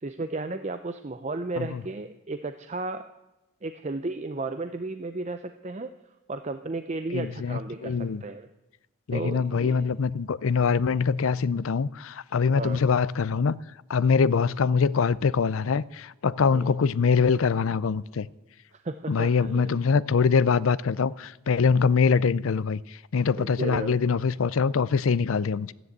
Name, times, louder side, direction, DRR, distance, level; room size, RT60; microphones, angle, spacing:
voice 1, 0.0-3.0 3.6-5.9 6.3-8.5 9.1-9.8 12.5-12.9 16.5-16.7 18.7-19.8 23.4-24.1, right 3 dB, 30° right, 0.5 m, -34 dB
voice 2, 7.1-8.2 9.1-13.6 13.9-18.3 19.1-25.7, left 5 dB, 70° left, 0.5 m, -24 dB
13.0 x 10.0 x 8.0 m
head